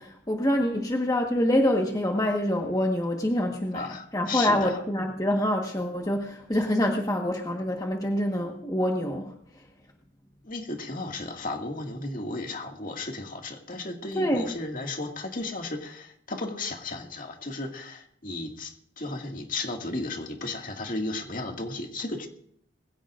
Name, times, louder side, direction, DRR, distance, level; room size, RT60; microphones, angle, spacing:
voice 1, 0.0-3.8 4.1-9.6 14.1-14.5, left 1 dB, 20° left, 2 dB, 1.4 m, -26 dB
voice 2, 3.7-4.8 10.4-22.3, left 2 dB, 50° left, 2 dB, 2.1 m, -34 dB
21.0 x 16.5 x 2.5 m, 0.67 s
head